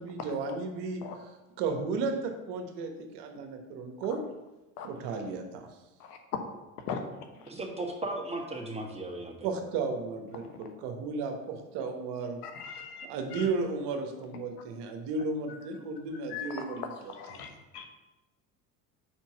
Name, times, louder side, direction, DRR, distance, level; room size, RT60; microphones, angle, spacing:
voice 1, 0.0-4.2 4.8-5.7 9.4-12.4 13.0-17.5, right 4 dB, 60° right, 5 dB, 1.2 m, -34 dB
voice 2, 7.3-9.5, right 2 dB, 15° right, 0 dB, 1.5 m, -36 dB
voice 3, 12.4-13.1 16.3-16.5 17.2-17.5 17.7-17.9, left 8 dB, 80° left, 5 dB, 1.1 m, -38 dB
4.8 x 4.4 x 5.8 m, 1.0 s
hypercardioid pair, 75°, 45 cm